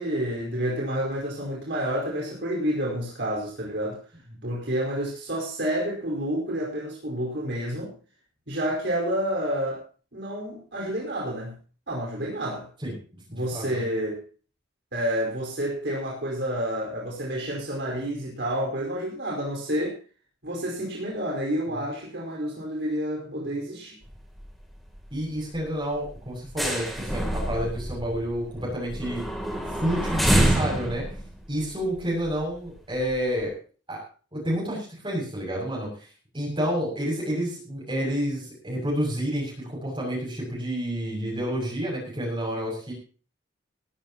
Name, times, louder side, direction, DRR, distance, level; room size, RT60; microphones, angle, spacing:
voice 1, 0.0-4.0 4.4-7.9 8.5-9.8 10.1-11.5 11.9-12.7 13.3-14.2 14.9-20.0 20.4-24.0, equal, 60° right, -2 dB, 4.8 m, -29 dB
voice 2, 13.3-13.6 25.1-29.2 29.8-31.0 31.5-33.5 33.9-34.0 34.3-42.9, equal, 25° right, -3 dB, 6.9 m, -29 dB
sound 1, 24.0-24.5 24.8-25.0 25.4-25.5 25.9-32.6 33.1-33.2, right 1 dB, ahead, 3.0 m, -27 dB
20.5 x 13.0 x 3.0 m, 0.38 s
head